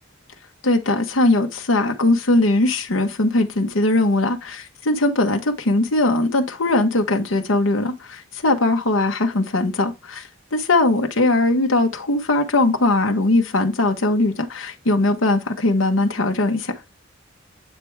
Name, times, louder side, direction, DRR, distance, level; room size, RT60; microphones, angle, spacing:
voice 1, 0.6-16.7, left 2 dB, 80° left, 1.0 m, -20 dB
8.2 x 3.4 x 4.6 m
head